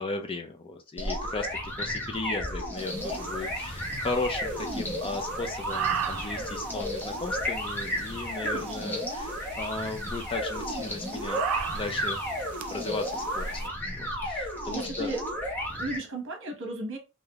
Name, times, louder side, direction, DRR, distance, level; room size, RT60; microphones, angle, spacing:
voice 1, 0.0-12.2 12.7-15.1, left 3 dB, 25° left, 0.4 m, -36 dB
sound 1, 1.0-16.0, equal, 10° left, 0.8 m, -33 dB
sound 2, 2.8-13.7, right 8 dB, 75° right, 0.3 m, -38 dB
Bird, 3.0-8.3, equal, 50° left, 0.8 m, -46 dB
voice 2, 8.4-9.0 14.6-15.2 15.7-17.0, right 2 dB, 60° right, 1.1 m, -35 dB
3.3 x 2.6 x 2.3 m
head